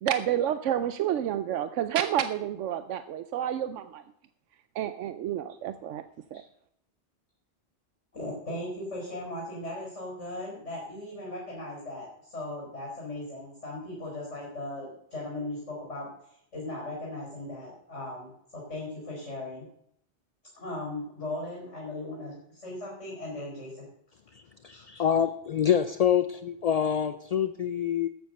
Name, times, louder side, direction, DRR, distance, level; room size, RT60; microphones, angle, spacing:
voice 1, 0.0-4.0 4.8-6.0 6.3-6.4, right 10 dB, 80° right, 11 dB, 1.0 m, -29 dB
voice 2, 8.1-16.1 16.5-19.6 20.6-23.8 24.7-25.0, left 1 dB, 75° left, -3 dB, 4.8 m, -38 dB
voice 3, 24.6-28.1, left 9 dB, 50° left, 11 dB, 0.4 m, -26 dB
12.5 x 8.1 x 6.5 m, 0.72 s
omnidirectional pair, 1.2 m